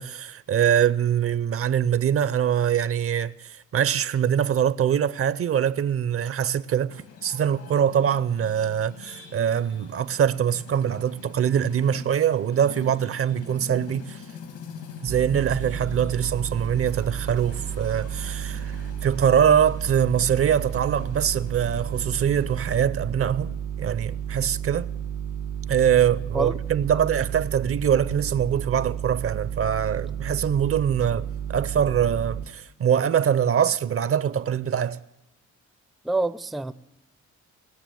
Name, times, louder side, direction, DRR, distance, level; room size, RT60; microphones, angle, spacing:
voice 1, 0.0-14.2 15.0-24.9 25.7-35.0, right 9 dB, 50° right, 0.6 m, -23 dB
sound 1, 6.9-22.6, left 6 dB, 80° left, 2.0 m, -44 dB
sound 2, 15.1-32.5, right 8 dB, 75° right, 1.7 m, -32 dB
voice 2, 36.0-36.7, right 2 dB, ahead, 0.4 m, -27 dB
20.0 x 6.8 x 9.2 m
cardioid pair, 90°, 30 cm